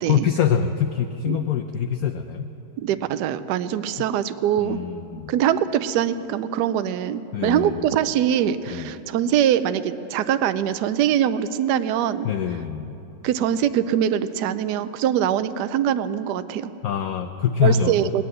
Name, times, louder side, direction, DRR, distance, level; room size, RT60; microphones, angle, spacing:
voice 1, 0.1-2.5 4.6-5.3 7.3-7.9 8.7-8.9 12.2-12.9 16.8-18.1, left 8 dB, 80° left, 6 dB, 0.8 m, -24 dB
voice 2, 2.8-4.8 5.3-12.3 13.2-16.7 17.6-18.2, right 10 dB, 75° right, 12 dB, 1.0 m, -23 dB
18.0 x 10.5 x 7.8 m, 3.0 s
omnidirectional pair, 2.2 m